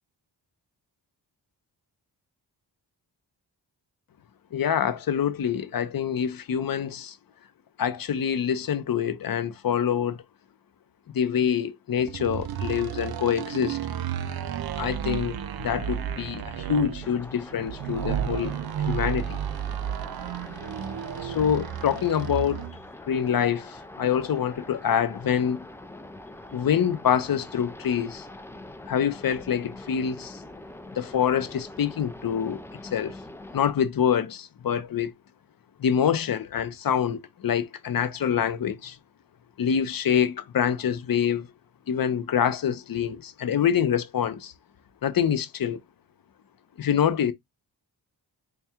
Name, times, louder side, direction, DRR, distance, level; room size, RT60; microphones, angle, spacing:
voice 1, 4.5-7.2 7.8-10.2 11.1-13.8 14.8-19.4 21.2-22.6 23.0-25.6 26.5-28.3 28.9-30.4 31.0-33.2 33.5-35.1 35.8-39.0 39.6-41.5 41.9-44.5 45.0-45.8 46.8-47.3, left 8 dB, 50° left, 0.6 m, -26 dB
sound 1, 12.0-22.8, right 10 dB, 55° right, 0.6 m, -32 dB
sound 2, 17.0-33.7, left 1 dB, 5° left, 0.4 m, -44 dB
4.2 x 2.2 x 3.5 m
cardioid pair, 75°, 44 cm